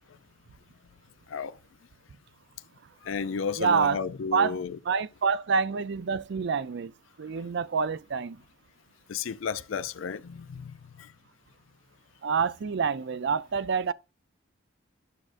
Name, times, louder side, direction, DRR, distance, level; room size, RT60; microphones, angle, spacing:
voice 1, 1.3-1.6 3.0-4.8 9.1-11.1, left 6 dB, 85° left, 0.4 m, -33 dB
voice 2, 3.6-4.0 4.3-4.6 4.9-6.9 7.2-8.4 12.2-13.9, right 5 dB, 65° right, 0.5 m, -27 dB
11.0 x 6.2 x 2.5 m
head